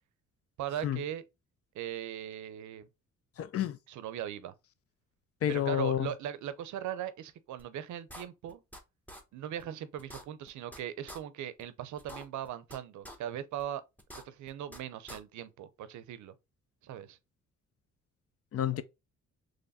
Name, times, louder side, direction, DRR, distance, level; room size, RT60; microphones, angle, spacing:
voice 1, 0.6-1.2 1.7-2.9 3.9-4.5 5.5-8.6 9.3-13.8 14.1-16.3 16.8-17.2, right 10 dB, 70° right, 0.6 m, -39 dB
voice 2, 3.4-3.8 5.4-6.1 18.5-18.8, left 10 dB, 50° left, 0.5 m, -30 dB
sound 1, 7.6-7.7 8.1-8.8 9.1-9.2 9.6-9.7 10.0-10.8 11.1-11.2 11.6-11.7 12.0-12.8 13.0-13.2 13.6-13.7 14.0-14.8 15.1-15.2, equal, 5° left, 0.9 m, -46 dB
3.9 x 3.1 x 2.5 m
cardioid pair, 90°, 30 cm